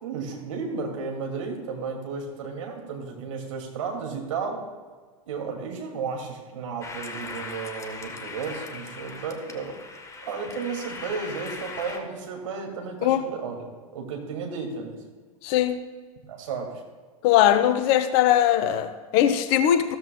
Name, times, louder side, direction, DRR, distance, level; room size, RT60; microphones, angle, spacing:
voice 1, 0.0-4.6 5.3-9.8 10.2-15.0 16.3-16.8, right 5 dB, 60° right, 2 dB, 2.3 m, -33 dB
sound 1, 6.8-12.0, left 3 dB, 15° left, 1.1 m, -39 dB
voice 2, 15.4-15.8 17.2-20.0, left 11 dB, 45° left, 10 dB, 0.8 m, -20 dB
14.5 x 13.5 x 2.2 m, 1.5 s
figure-of-eight pair, 90°, 19 cm